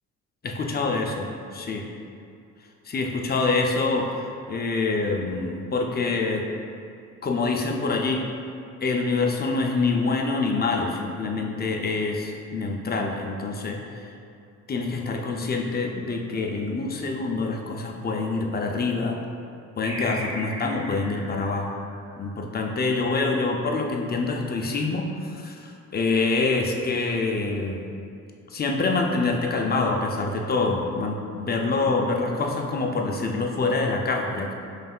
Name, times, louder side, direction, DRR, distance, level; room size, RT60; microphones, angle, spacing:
voice 1, 0.4-1.3 1.5-1.9 2.9-6.4 7.2-8.2 8.8-14.1 14.7-19.2 19.8-21.7 22.2-27.8 28.5-34.5, left 3 dB, 30° left, 1 dB, 0.5 m, -26 dB
sound 1, 19.8-22.8, equal, 65° right, 1.3 m, -38 dB
5.3 x 3.3 x 2.3 m, 2.5 s
cardioid pair, 90°, 30 cm